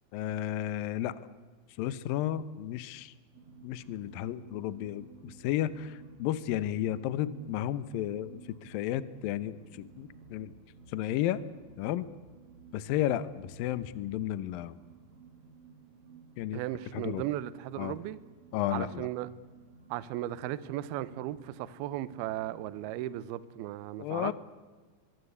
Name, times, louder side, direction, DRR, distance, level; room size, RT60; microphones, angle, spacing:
voice 1, 0.1-1.2 1.8-3.1 3.6-10.5 10.9-11.4 11.8-12.1 12.7-14.8 16.4-16.6 16.9-17.2 17.8-18.0 18.5-19.1 24.0-24.3, left 12 dB, 75° left, 2.1 m, -33 dB
sound 1, 3.3-23.1, right 4 dB, 40° right, 3.3 m, -55 dB
voice 2, 16.5-18.2 18.7-19.3 19.9-24.3, right 14 dB, 75° right, 2.5 m, -36 dB
24.0 x 23.0 x 8.2 m
omnidirectional pair, 5.1 m